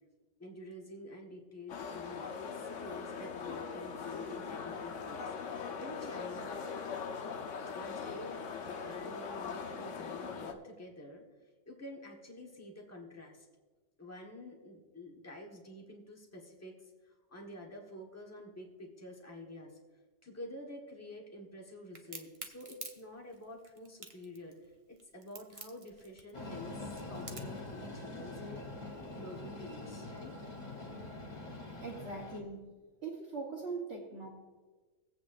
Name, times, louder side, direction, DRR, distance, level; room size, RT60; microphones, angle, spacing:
voice 1, 0.4-6.7 7.7-11.2 11.6-13.5 14.0-19.8 20.2-24.5 24.9-28.7 29.1-30.4, left 1 dB, 10° left, 0 dB, 1.3 m, -49 dB
sound 1, 1.7-10.5, left 5 dB, 65° left, 1.1 m, -41 dB
Crack, 21.9-27.6, right 3 dB, 30° right, 0.8 m, -48 dB
Train, 26.3-32.4, left 2 dB, 30° left, 1.2 m, -44 dB
voice 2, 31.8-32.7 33.0-34.3, right 4 dB, 50° right, -4 dB, 1.5 m, -41 dB
19.5 x 8.3 x 2.6 m, 1.3 s
omnidirectional pair, 1.5 m